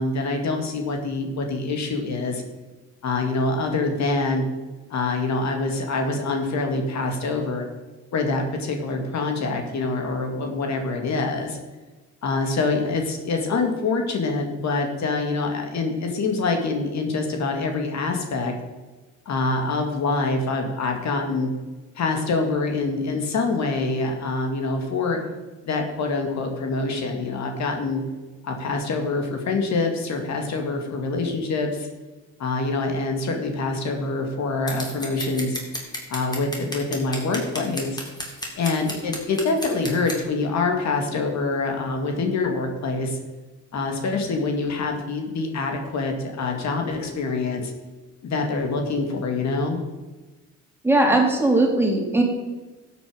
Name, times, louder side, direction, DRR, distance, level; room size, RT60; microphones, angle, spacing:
voice 1, 0.0-2.4 3.0-4.4 4.9-7.7 8.1-11.6 12.2-18.5 19.3-21.5 22.0-25.2 25.7-28.0 28.4-31.9 32.4-35.6 36.1-38.0 38.6-43.2 43.7-47.7 48.2-49.8, left 3 dB, 65° left, 3 dB, 2.1 m, -25 dB
Scissors, 34.7-40.2, left 1 dB, 15° left, 3.1 m, -33 dB
voice 2, 50.8-52.2, right 2 dB, 10° right, 0 dB, 3.0 m, -19 dB
12.5 x 8.2 x 5.0 m, 1.2 s
cardioid pair, 90°, 30 cm